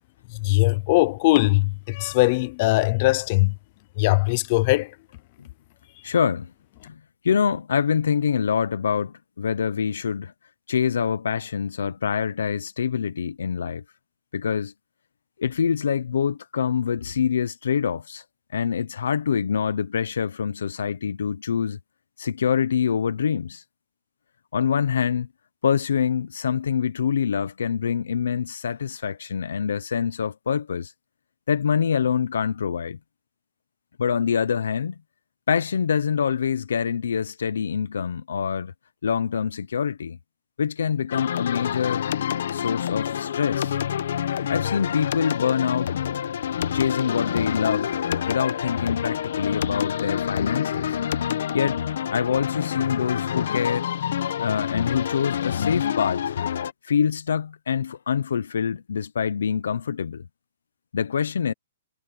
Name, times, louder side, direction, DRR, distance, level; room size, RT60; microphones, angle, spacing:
voice 1, 0.3-3.5 4.0-4.9, left 21 dB, 30° left, 0.6 m, -20 dB
voice 2, 6.0-6.5 6.8-7.0 7.2-10.3 10.7-13.8 14.3-14.7 15.4-18.2 18.5-21.8 22.2-23.6 24.5-25.3 25.6-30.9 31.5-33.0 34.0-35.0 35.5-38.7 39.0-40.2 40.6-42.0 42.5-43.8 44.5-45.9 46.7-47.9 48.3-50.9 51.5-51.8 52.1-53.9 54.4-56.4 56.8-60.3 60.9-61.5, left 7 dB, 85° left, 0.9 m, -25 dB
sound 1, 41.1-56.7, left 9 dB, 60° left, 1.2 m, -27 dB
hypercardioid pair, 170°, 0 cm